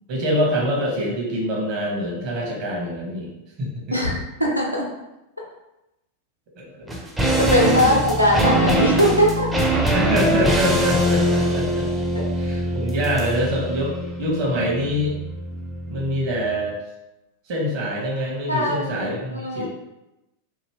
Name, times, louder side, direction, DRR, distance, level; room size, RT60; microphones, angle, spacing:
voice 1, 0.1-3.3 3.6-3.7 4.1-4.2 6.6-7.0 7.8-8.0 9.9-11.9 12.4-15.2 15.9-16.7 17.5-19.7, equal, 45° right, -2 dB, 1.1 m, -24 dB
voice 2, 3.9-4.9 7.4-9.5 12.1-12.2 18.5-19.7, equal, 90° left, -2 dB, 0.7 m, -20 dB
sound 1, 6.9-16.3 16.5-16.6, right 1 dB, 10° right, 0.5 m, -23 dB
2.9 x 2.7 x 3.1 m, 0.93 s
figure-of-eight pair, 90°, 0 cm